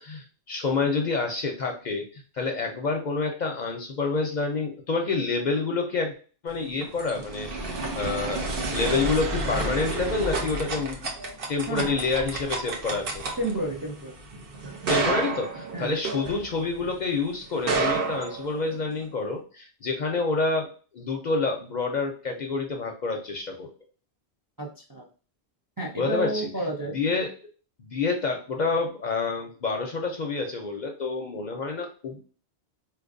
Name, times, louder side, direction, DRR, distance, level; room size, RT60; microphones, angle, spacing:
voice 1, 0.0-6.1 6.4-11.1 11.5-13.2 14.9-20.7 20.9-23.7 26.0-26.5 26.9-27.3 27.8-32.2, left 4 dB, 55° left, 3 dB, 0.5 m, -28 dB
sound 1, 6.6-16.9 17.5-19.0, right 3 dB, 60° right, 0.9 m, -30 dB
voice 2, 11.7-12.0 13.4-14.1 15.7-15.9 24.6-25.1 25.8-27.0, right 2 dB, 25° right, -1 dB, 0.5 m, -31 dB
4.2 x 2.6 x 2.5 m, 0.38 s
omnidirectional pair, 1.1 m